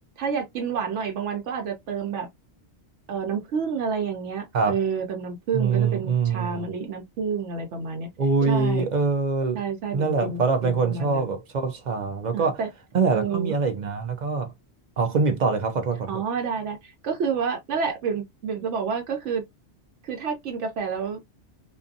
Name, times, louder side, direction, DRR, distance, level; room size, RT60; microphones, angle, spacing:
voice 1, 0.2-2.3 3.1-8.1 8.5-8.9 9.5-11.3 12.3-12.7 13.1-13.5 16.1-19.4 20.0-21.2, right 6 dB, 90° right, 1.0 m, -29 dB
voice 2, 5.5-6.7 8.2-9.6 9.9-12.6 12.9-14.5 15.0-16.2, right 4 dB, 50° right, 0.6 m, -24 dB
2.5 x 2.4 x 2.5 m
omnidirectional pair, 1.2 m